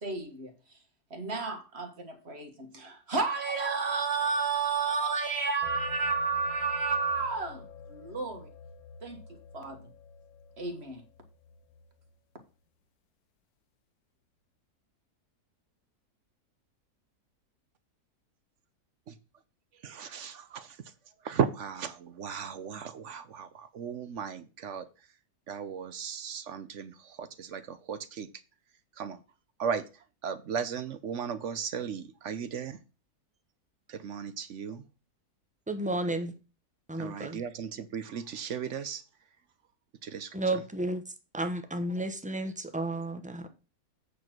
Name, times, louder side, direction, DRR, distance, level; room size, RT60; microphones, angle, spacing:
voice 1, 0.0-0.5 1.1-8.5 9.0-9.2 9.5-9.8 10.6-11.0, right 4 dB, 40° right, 1.9 m, -31 dB
sound 1, 5.6-12.2, left 5 dB, 70° left, 1.2 m, -48 dB
voice 2, 19.8-20.7 21.2-24.8 25.5-28.3 29.0-29.2 29.6-29.8 30.2-32.8 33.9-34.8 37.0-39.0 40.0-40.3, right 7 dB, 60° right, 0.9 m, -36 dB
voice 3, 35.7-36.3 36.9-37.4 40.3-41.0 41.3-43.5, right 1 dB, 5° right, 0.7 m, -32 dB
8.5 x 4.7 x 6.0 m
omnidirectional pair, 1.7 m